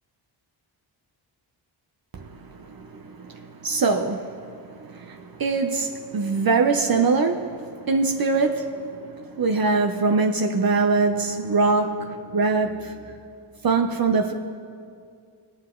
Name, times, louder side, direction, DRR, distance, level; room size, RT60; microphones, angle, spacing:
voice 1, 2.1-13.1 13.6-14.3, right 4 dB, 50° right, 0.8 m, -23 dB
21.0 x 8.0 x 3.8 m
cardioid pair, 80°, 47 cm